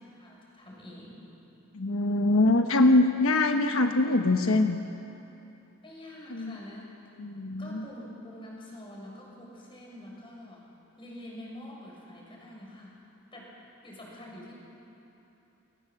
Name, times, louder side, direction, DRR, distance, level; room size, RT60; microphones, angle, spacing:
voice 1, 0.1-1.3 5.8-7.2 7.6-10.7 11.0-13.0 13.3-13.6 13.8-14.6, left 1 dB, 25° left, -2 dB, 6.8 m, -46 dB
voice 2, 1.7-4.8 6.3-6.5 7.2-7.9, left 2 dB, 90° left, 5 dB, 1.2 m, -23 dB
29.0 x 22.0 x 7.7 m, 3.0 s
head